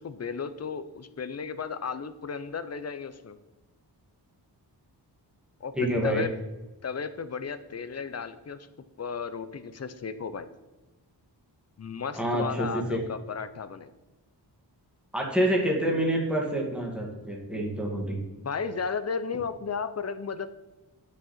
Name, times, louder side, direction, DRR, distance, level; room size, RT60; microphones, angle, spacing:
voice 1, 0.0-3.4 5.6-5.8 6.0-6.4 6.8-8.7 9.0-10.5 11.8-13.9 18.4-20.5, left 5 dB, 40° left, 11 dB, 0.7 m, -34 dB
voice 2, 5.7-6.3 12.2-13.0 15.1-18.2, right 1 dB, 5° right, -2 dB, 2.1 m, -27 dB
9.6 x 6.4 x 4.3 m, 1.1 s
wide cardioid pair, 85°, 41 cm